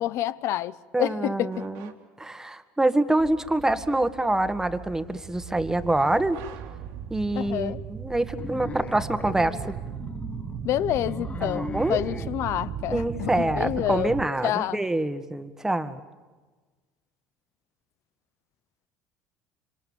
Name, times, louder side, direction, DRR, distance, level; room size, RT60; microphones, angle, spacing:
voice 1, 0.0-1.6 7.3-7.8 10.6-14.1 14.4-14.8, left 13 dB, 60° left, 0.8 m, -28 dB
voice 2, 0.9-1.9 2.2-6.4 7.1-9.7 11.4-12.0 12.9-16.0, right 2 dB, 10° right, 1.6 m, -26 dB
sound 1, 1.5-2.4 6.0-7.5, right 10 dB, 85° right, 2.5 m, -48 dB
sound 2, 3.2-14.3, right 8 dB, 50° right, 1.0 m, -37 dB
sound 3, 8.4-12.3, left 4 dB, 25° left, 1.0 m, -38 dB
26.5 x 25.5 x 7.3 m
supercardioid pair, 90°, 5 cm